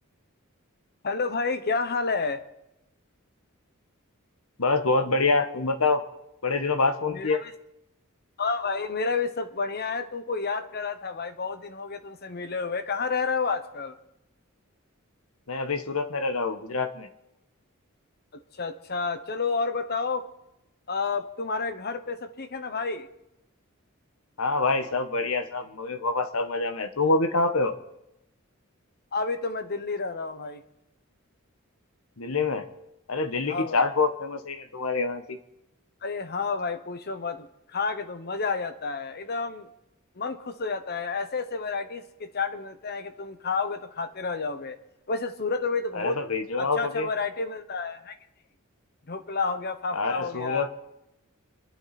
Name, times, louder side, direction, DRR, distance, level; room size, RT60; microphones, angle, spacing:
voice 1, 1.0-2.4 7.1-7.5 8.4-14.0 18.3-20.2 20.9-23.1 29.1-30.6 33.5-33.8 36.0-39.7 40.2-44.8 45.1-46.2 46.6-48.2 49.1-50.7, left 4 dB, 50° left, 10 dB, 1.1 m, -30 dB
voice 2, 4.6-6.0 6.4-7.4 15.5-17.1 24.4-27.7 32.2-32.6 33.1-35.4 45.9-47.1 49.9-50.7, left 3 dB, 90° left, 9 dB, 1.3 m, -26 dB
27.5 x 11.0 x 4.3 m, 0.88 s
head